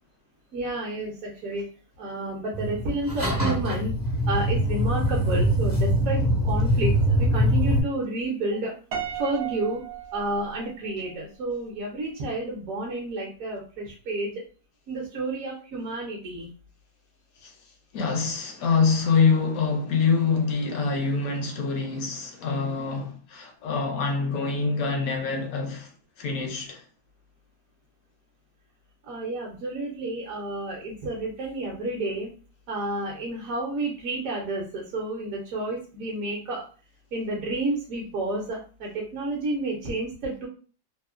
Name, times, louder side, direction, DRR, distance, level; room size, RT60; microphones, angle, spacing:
voice 1, 0.5-1.7 2.0-3.9 4.3-8.7 9.1-9.8 10.1-14.3 14.9-16.5 29.1-32.3 32.7-36.6 37.1-40.5, right 2 dB, 65° right, 1.0 m, -30 dB
sound 1, 2.5-7.8, equal, 25° right, 0.4 m, -23 dB
Piano, 8.9-11.1, right 8 dB, 80° right, 0.6 m, -35 dB
voice 2, 17.9-25.9 26.2-26.8, left 5 dB, 70° left, 0.9 m, -25 dB
2.9 x 2.0 x 2.4 m
omnidirectional pair, 1.8 m